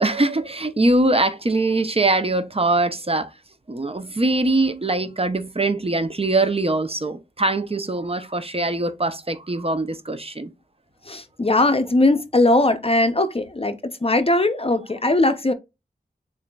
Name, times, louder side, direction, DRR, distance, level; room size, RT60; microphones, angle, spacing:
voice 1, 0.0-3.3 3.7-10.5, right 2 dB, 35° right, 0.6 m, -22 dB
voice 2, 11.1-13.7 14.0-15.5, left 2 dB, 35° left, 0.5 m, -19 dB
6.9 x 2.5 x 2.2 m
wide cardioid pair, 50°, 17 cm